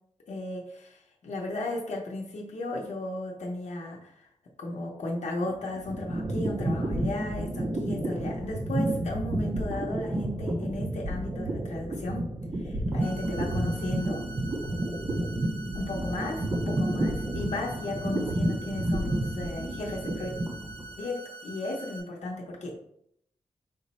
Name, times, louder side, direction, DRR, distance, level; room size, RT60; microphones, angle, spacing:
voice 1, 0.3-4.3 4.6-12.3 12.5-14.2 15.7-20.3 21.0-22.8, left 2 dB, 80° left, -2 dB, 0.7 m, -35 dB
sound 1, 5.5-20.9, right 1 dB, 25° right, 0.4 m, -30 dB
sound 2, 13.0-22.0, right 3 dB, 15° left, 0.8 m, -45 dB
4.9 x 2.0 x 4.1 m, 0.72 s
wide cardioid pair, 175°, 12 cm